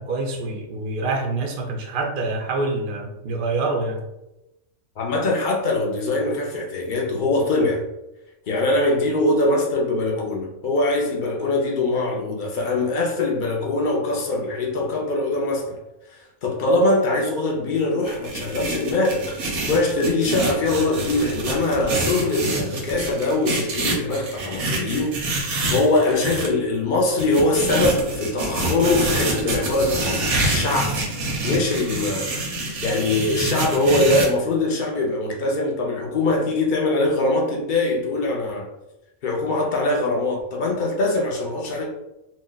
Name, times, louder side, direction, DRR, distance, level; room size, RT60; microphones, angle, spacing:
voice 1, 0.0-4.0, right 3 dB, 65° right, 0 dB, 0.5 m, -26 dB
voice 2, 5.0-7.8 8.5-15.8 16.1-25.2 25.7-31.0 31.4-32.3 32.8-38.7 39.2-41.9, left 2 dB, 65° left, 0 dB, 0.5 m, -22 dB
sound 1, 18.0-26.5 27.2-34.3, right 2 dB, 85° right, 1.2 m, -26 dB
2.8 x 2.1 x 3.7 m, 0.94 s
omnidirectional pair, 1.5 m